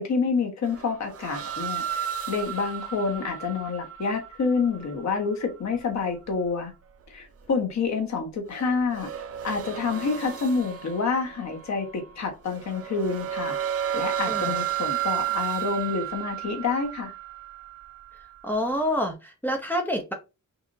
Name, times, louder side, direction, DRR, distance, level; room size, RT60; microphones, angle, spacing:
voice 1, 0.0-6.7 7.1-9.1 9.4-13.6 13.9-17.1, left 4 dB, 60° left, 1.4 m, -28 dB
sound 1, 0.7-6.0 8.5-11.9 12.5-18.5, right 10 dB, 50° right, 0.6 m, -33 dB
voice 2, 14.3-14.6 18.4-20.1, equal, 5° left, 0.8 m, -27 dB
5.9 x 2.7 x 2.7 m
wide cardioid pair, 140°, 31 cm